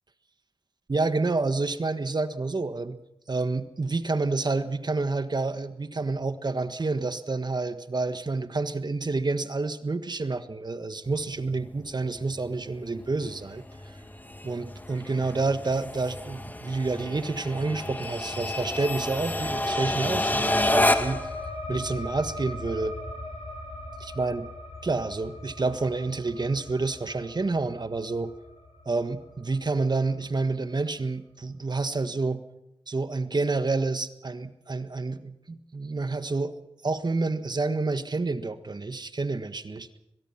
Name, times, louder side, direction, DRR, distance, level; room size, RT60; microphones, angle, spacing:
voice 1, 0.9-3.0 3.3-13.6 14.4-21.2 21.7-23.0 24.0-24.5 24.8-28.3 28.8-32.4 32.9-36.5 36.8-39.9, right 3 dB, 45° right, 10 dB, 1.6 m, -29 dB
sound 1, 11.1-21.3, left 1 dB, 15° left, 2.0 m, -30 dB
sound 2, 19.4-30.6, left 2 dB, 75° left, 6.0 m, -40 dB
22.5 x 22.0 x 5.9 m, 0.82 s
cardioid pair, 50°, 10 cm